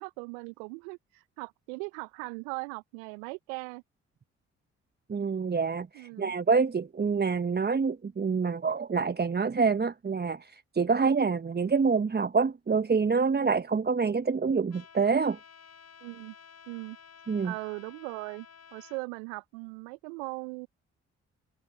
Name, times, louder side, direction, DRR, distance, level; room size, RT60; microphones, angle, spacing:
voice 1, 0.0-3.8 5.9-6.3 16.0-16.3 16.7-17.0 17.4-18.5 18.7-20.7, right 33 dB, 75° right, 1.1 m, -39 dB
voice 2, 5.1-15.4 17.3-17.5, right 5 dB, 25° right, 1.3 m, -26 dB
Trumpet, 14.7-19.0, left 7 dB, 45° left, 5.5 m, -53 dB
figure-of-eight pair, 40°, 35 cm